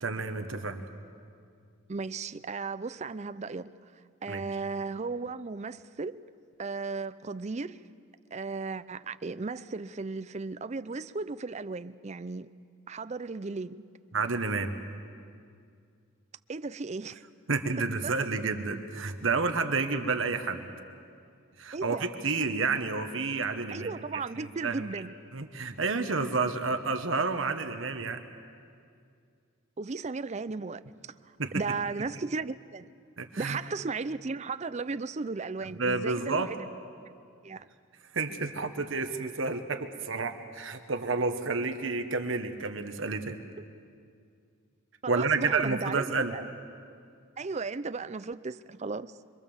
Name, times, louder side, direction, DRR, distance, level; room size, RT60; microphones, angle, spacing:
voice 1, 0.0-0.9 4.3-4.4 14.1-14.7 17.5-20.7 21.6-23.9 24.4-25.0 25.3-28.2 31.4-31.5 33.2-33.6 35.8-36.5 38.1-43.4 45.1-46.3, right 4 dB, 70° right, 1.3 m, -30 dB
voice 2, 1.9-3.7 4.2-6.2 6.6-7.8 8.3-12.5 12.9-13.8 16.5-17.2 18.0-18.1 21.7-22.1 23.7-25.1 29.8-30.8 31.5-32.9 33.4-36.6 37.4-37.7 45.0-46.4 47.4-49.1, right 4 dB, 35° right, 0.5 m, -35 dB
26.0 x 23.0 x 7.2 m
head